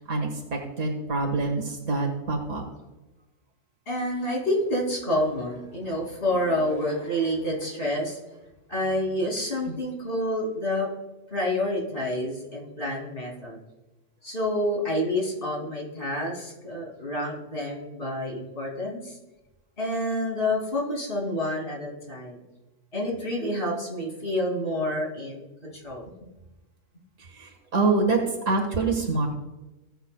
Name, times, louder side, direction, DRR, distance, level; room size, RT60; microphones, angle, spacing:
voice 1, 0.0-2.6 9.7-9.8 27.3-28.2 28.5-29.3, right 3 dB, 80° right, 1 dB, 1.9 m, -26 dB
voice 2, 3.9-8.2 8.7-10.9 11.3-13.6 14.2-19.2 19.8-22.4 22.9-26.1, left 1 dB, 45° left, -2 dB, 2.9 m, -28 dB
19.0 x 8.0 x 2.3 m, 1.1 s
omnidirectional pair, 1.3 m